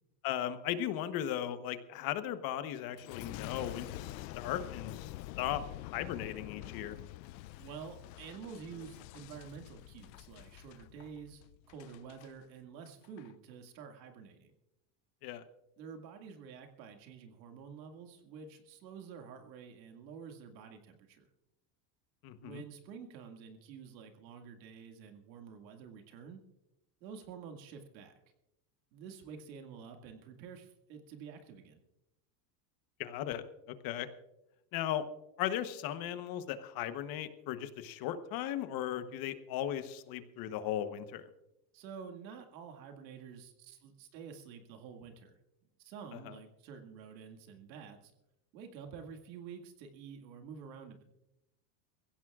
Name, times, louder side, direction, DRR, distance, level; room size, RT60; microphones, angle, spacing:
voice 1, 0.2-7.0 15.2-15.4 22.2-22.6 33.0-34.1 34.7-35.0 35.4-41.3 46.2-46.3, left 11 dB, 45° left, 11 dB, 1.1 m, -37 dB
Boom, 3.0-12.3 12.9-13.3, left 16 dB, 85° left, 0.6 m, -47 dB
voice 2, 7.6-14.5 15.8-21.3 22.4-26.4 27.0-28.1 28.9-31.8 41.7-45.4 45.8-48.1 48.5-51.0, right 6 dB, 90° right, 4 dB, 2.2 m, -49 dB
22.5 x 16.0 x 2.4 m, 0.91 s
supercardioid pair, 140°, 50 cm